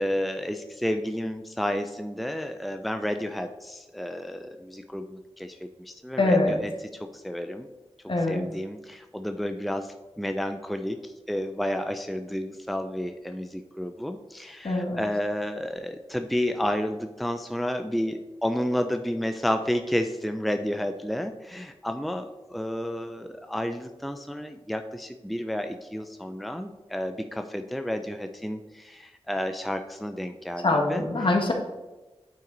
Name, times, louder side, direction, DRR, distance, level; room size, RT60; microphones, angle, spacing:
voice 1, 0.0-7.7 8.3-31.0, equal, ahead, 7 dB, 0.5 m, -31 dB
voice 2, 6.2-6.6 8.1-8.4 14.6-15.0 30.6-31.5, left 2 dB, 55° left, 1 dB, 1.5 m, -23 dB
9.0 x 5.9 x 3.9 m, 1.2 s
wide cardioid pair, 85°, 10 cm